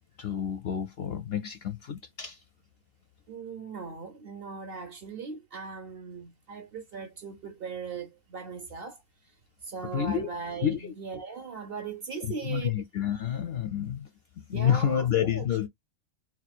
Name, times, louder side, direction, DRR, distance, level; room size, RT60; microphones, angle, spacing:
voice 1, 0.2-2.4 9.9-10.3 10.6-10.9 12.2-14.1 14.4-15.7, left 9 dB, 65° left, 0.6 m, -29 dB
voice 2, 3.3-9.0 9.6-12.7 14.5-15.6, right 5 dB, 55° right, 0.7 m, -39 dB
3.0 x 2.3 x 4.1 m
omnidirectional pair, 1.4 m